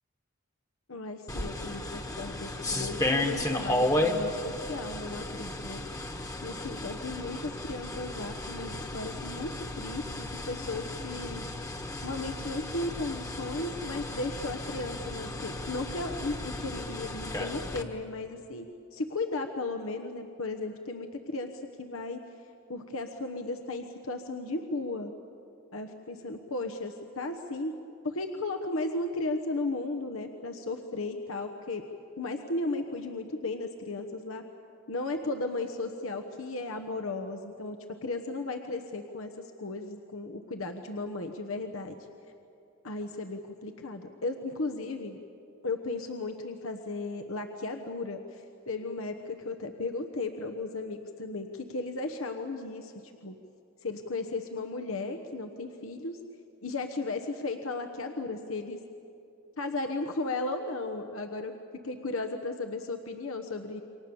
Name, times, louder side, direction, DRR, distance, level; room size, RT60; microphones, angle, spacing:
voice 1, 0.9-5.8 6.4-11.4 12.0-22.2 22.7-25.1 25.7-27.7 28.0-31.8 32.2-34.4 34.9-42.0 42.8-45.2 45.6-52.9 53.2-53.4 53.8-56.2 56.6-58.8 59.6-61.5 61.8-63.8, left 2 dB, 80° left, 5 dB, 1.2 m, -35 dB
sound 1, 1.3-17.8, left 1 dB, 15° left, 1.3 m, -34 dB
28.5 x 24.5 x 7.1 m, 2.7 s
head